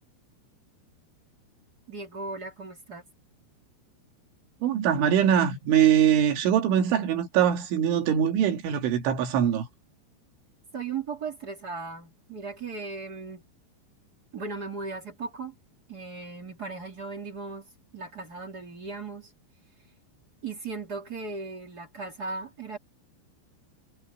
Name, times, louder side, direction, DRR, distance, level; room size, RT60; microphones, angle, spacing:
voice 1, 1.9-3.0 10.7-13.4 14.3-15.5 15.9-19.3 20.4-22.8, right 4 dB, 35° right, 1.6 m, -37 dB
voice 2, 4.6-9.7, right 9 dB, 70° right, 4.4 m, -22 dB
omnidirectional pair, 5.8 m